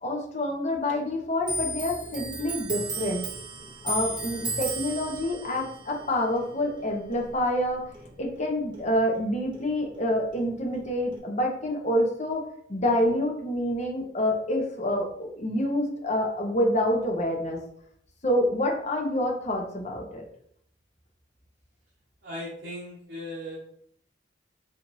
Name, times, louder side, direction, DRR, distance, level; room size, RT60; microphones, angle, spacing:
voice 1, 0.0-3.2 3.8-7.8 8.2-17.6 18.2-20.2, left 1 dB, 40° left, 1 dB, 0.7 m, -27 dB
Clock, 1.4-8.5 8.7-10.1 10.3-11.2, right 2 dB, 25° right, 0.6 m, -35 dB
voice 2, 22.2-23.6, left 1 dB, 60° right, -7 dB, 1.1 m, -37 dB
4.6 x 2.6 x 2.6 m, 0.68 s
head